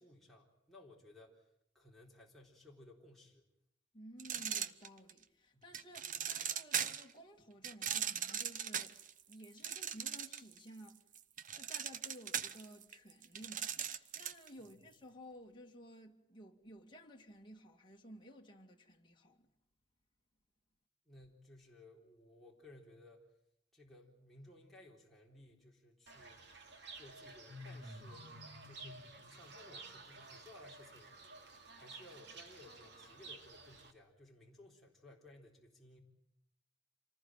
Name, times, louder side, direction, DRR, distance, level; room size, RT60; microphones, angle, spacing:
voice 1, 0.0-1.5 1.7-3.4 5.5-5.6 14.6-14.8 21.1-23.2 23.7-26.4 27.0-28.3 28.6-31.2 31.7-36.0, left 1 dB, ahead, 4.0 m, -59 dB
voice 2, 3.9-9.0 9.3-11.0 11.6-19.5, equal, 25° left, 2.3 m, -55 dB
sound 1, 4.2-5.2 5.7-7.1 7.6-10.6 10.9-14.5, right 8 dB, 45° right, 0.9 m, -39 dB
Fowl / Bird, 26.1-33.9, right 2 dB, 60° right, 2.8 m, -52 dB
27.0 x 19.5 x 9.0 m
head